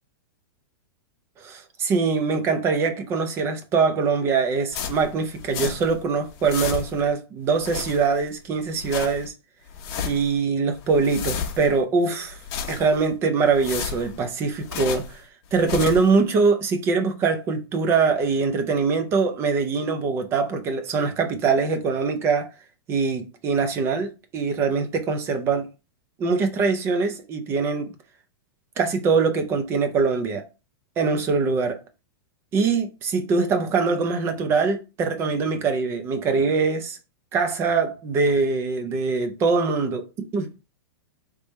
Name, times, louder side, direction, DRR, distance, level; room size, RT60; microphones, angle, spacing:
voice 1, 1.4-9.3 10.0-12.4 12.7-15.2 15.5-22.5 22.9-25.7 26.2-27.9 28.8-30.4 31.0-31.8 32.5-37.0 37.3-40.5, right 4 dB, 20° right, 0.6 m, -23 dB
sound 1, 4.7-6.0 6.3-7.1 7.5-8.3 8.6-9.3 9.7-10.4 10.7-11.8 12.3-13.1 13.5-15.2 15.5-16.2, left 7 dB, 35° left, 1.0 m, -33 dB
3.4 x 3.3 x 4.1 m
supercardioid pair, 160°, 13 cm